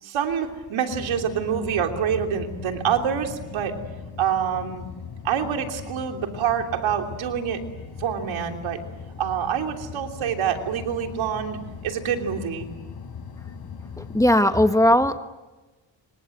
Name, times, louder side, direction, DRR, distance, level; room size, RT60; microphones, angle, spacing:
voice 1, 0.0-3.8 4.2-4.8 5.2-7.6 8.0-8.8 9.2-12.7, right 8 dB, 80° right, 4 dB, 3.3 m, -26 dB
sound 1, 0.9-14.3, left 6 dB, 55° left, 4.8 m, -39 dB
voice 2, 14.0-15.2, left 1 dB, 5° left, 8 dB, 1.4 m, -18 dB
27.5 x 24.5 x 7.9 m, 1.2 s
cardioid pair, 90°, 47 cm